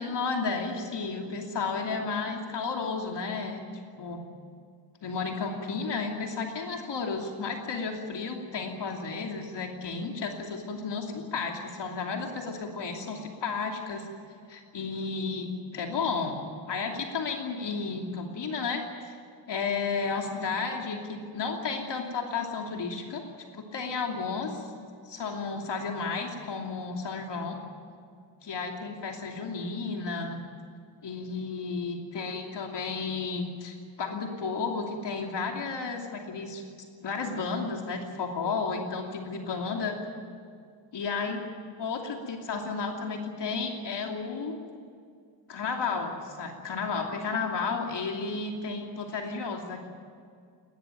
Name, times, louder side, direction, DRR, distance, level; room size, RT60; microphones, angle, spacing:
voice 1, 0.0-3.7 4.0-4.2 5.0-14.1 14.5-19.1 19.5-23.2 23.5-24.7 25.0-27.6 28.4-30.4 31.0-36.6 37.0-39.9 40.9-41.4 41.8-44.5 45.5-49.9, left 4 dB, 70° left, 2 dB, 2.9 m, -32 dB
20.5 x 19.0 x 9.3 m, 2.3 s
wide cardioid pair, 165°, 44 cm